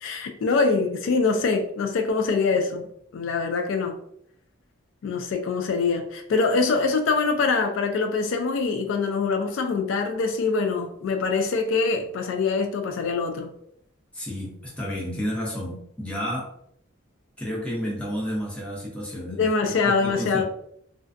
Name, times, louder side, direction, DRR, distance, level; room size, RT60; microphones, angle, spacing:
voice 1, 0.0-2.9 3.1-3.9 5.0-13.5 19.3-20.4, left 4 dB, 75° left, 5 dB, 0.3 m, -24 dB
voice 2, 14.1-16.5 17.4-19.5 19.8-20.4, equal, 5° left, -5 dB, 0.7 m, -31 dB
2.5 x 2.2 x 2.5 m, 0.70 s
head